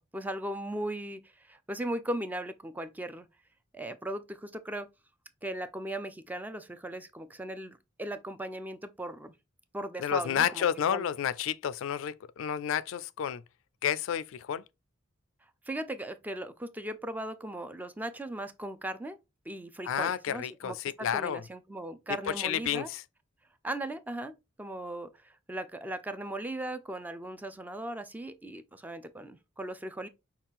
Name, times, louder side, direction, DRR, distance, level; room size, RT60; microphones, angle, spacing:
voice 1, 0.0-3.3 3.7-4.9 5.4-9.3 9.7-10.7 10.9-11.0 15.7-19.2 19.5-20.8 21.1-22.9 23.6-30.1, right 1 dB, 10° right, 0.4 m, -38 dB
voice 2, 10.0-13.4 13.8-14.6 19.8-21.4 22.3-23.0, left 9 dB, 70° left, 0.3 m, -30 dB
5.7 x 2.4 x 3.5 m
head